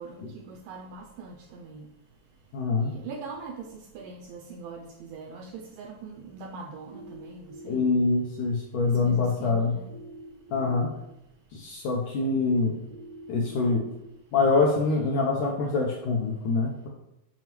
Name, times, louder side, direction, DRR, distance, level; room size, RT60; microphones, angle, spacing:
voice 1, 0.0-1.9 2.8-7.9 8.8-9.9, right 4 dB, 85° right, 2.0 m, -42 dB
voice 2, 2.5-2.9 7.7-9.7 10.5-10.9 11.5-12.8 13.3-13.9 14.3-16.9, left 3 dB, 80° left, 1.8 m, -25 dB
sound 1, 6.9-7.9 9.9-10.9 12.9-13.9, right 2 dB, 35° right, 0.6 m, -44 dB
7.4 x 5.8 x 3.0 m
omnidirectional pair, 4.4 m